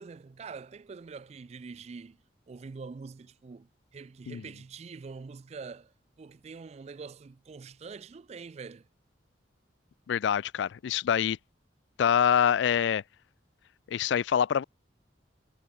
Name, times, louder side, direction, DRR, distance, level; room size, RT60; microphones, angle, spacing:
voice 1, 0.0-2.2 2.5-8.9, right 4 dB, 35° right, 0.3 m, -45 dB
voice 2, 10.1-11.4 12.0-13.0 13.9-14.6, left 8 dB, 70° left, 0.3 m, -25 dB
head